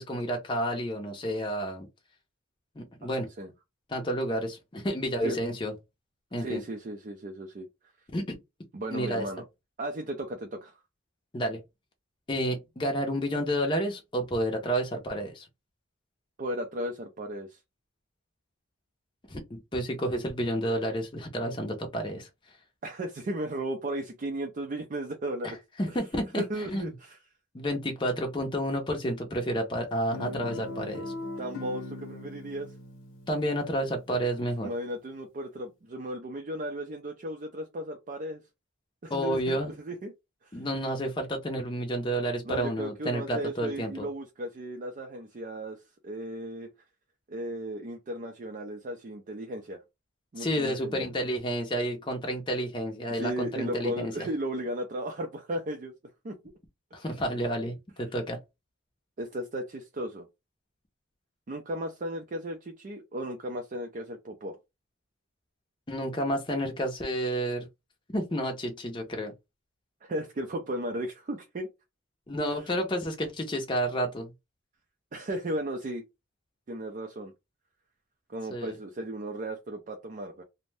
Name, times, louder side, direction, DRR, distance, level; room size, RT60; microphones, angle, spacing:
voice 1, 0.0-1.9 2.8-3.3 3.9-5.7 6.3-6.6 8.1-8.4 8.9-9.3 11.3-11.6 12.3-15.5 19.3-22.3 25.8-26.4 26.7-26.9 27.5-31.1 33.3-34.7 39.1-39.7 40.5-44.1 50.4-54.3 56.9-58.4 65.9-67.7 68.1-69.3 72.3-74.3 78.5-78.7, equal, 25° left, 0.5 m, -30 dB
voice 2, 6.3-7.7 8.7-9.4 9.8-10.8 16.4-17.6 22.8-25.6 25.9-26.0 26.4-27.2 31.4-32.7 34.6-38.4 39.0-40.1 40.4-40.7 42.4-46.7 47.3-49.8 50.3-51.1 53.1-55.9 56.2-56.4 57.0-57.1 58.0-58.1 59.2-60.3 61.5-64.6 70.0-71.7 72.5-72.7 75.1-76.0 76.7-77.3 78.3-80.4, right 1 dB, 40° right, 0.4 m, -35 dB
Guitar, 30.1-34.4, left 2 dB, 70° left, 0.8 m, -40 dB
2.6 x 2.1 x 3.2 m
head